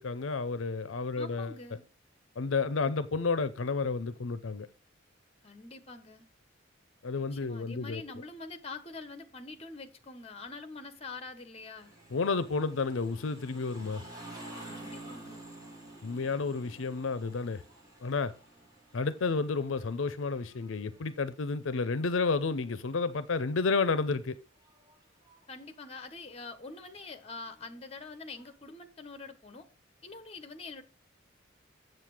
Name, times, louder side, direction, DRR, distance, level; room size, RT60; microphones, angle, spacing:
voice 1, 0.0-1.5 2.4-4.7 7.0-8.0 12.1-14.0 16.0-17.6 18.0-18.3 18.9-24.4, left 4 dB, 75° left, 0.6 m, -31 dB
voice 2, 1.1-1.9 5.4-6.2 7.3-11.9 14.7-15.5 25.5-29.7 30.0-30.8, left 3 dB, 30° left, 1.2 m, -45 dB
sound 1, 11.8-21.7 22.1-23.6 24.2-24.3 24.6-25.4 26.3-27.8 28.3-28.5, right 1 dB, 20° right, 2.6 m, -50 dB
7.8 x 7.6 x 4.9 m
head